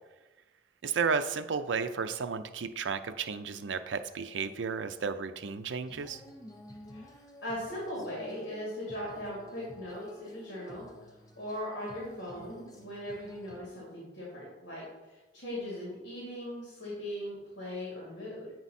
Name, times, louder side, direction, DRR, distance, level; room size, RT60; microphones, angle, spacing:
voice 1, 0.8-6.2, right 5 dB, 80° right, 10 dB, 0.5 m, -33 dB
Female singing, 5.8-13.6, left 1 dB, 20° left, 0.9 m, -52 dB
voice 2, 6.9-10.9 11.4-18.5, left 1 dB, 65° left, -6 dB, 2.5 m, -39 dB
8.9 x 4.6 x 4.2 m, 1.1 s
head